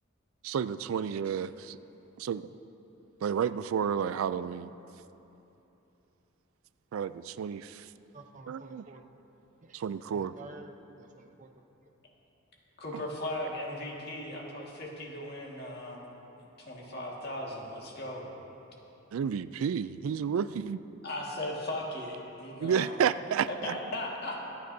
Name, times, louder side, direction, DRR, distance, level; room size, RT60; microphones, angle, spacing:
voice 1, 0.4-1.8 2.2-2.4 3.2-4.7 6.9-7.9 8.5-8.8 9.7-10.3 19.1-20.8 22.6-23.7, right 7 dB, 85° right, 14 dB, 0.3 m, -31 dB
voice 2, 8.1-9.0 9.6-9.8 10.1-11.6, right 2 dB, 40° right, 4 dB, 0.7 m, -50 dB
voice 3, 12.8-16.1 16.6-18.3 20.3-20.6 21.0-22.9 23.5-24.4, left 1 dB, 50° left, -2 dB, 1.8 m, -37 dB
24.0 x 9.1 x 2.7 m, 3.0 s
head